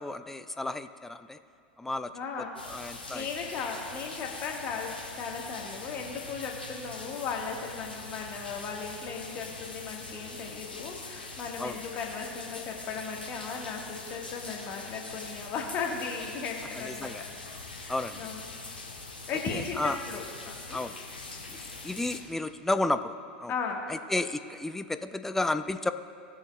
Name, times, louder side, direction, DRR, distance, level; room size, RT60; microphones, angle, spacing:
voice 1, 0.0-1.4 1.8-2.1 2.7-3.3 11.6-11.8 16.8-17.2 17.9-18.2 19.5-20.0 20.7-20.9 21.5-21.6 21.8-23.1 23.4-23.5 23.9-25.9, left 2 dB, 5° left, 11 dB, 0.4 m, -32 dB
voice 2, 2.1-17.1 17.6-20.8 23.5-24.0, left 5 dB, 35° left, 0 dB, 1.5 m, -37 dB
sound 1, 2.6-22.2, left 3 dB, 85° left, 1.5 m, -43 dB
17.0 x 7.2 x 2.3 m, 2.5 s
figure-of-eight pair, 85°, 5 cm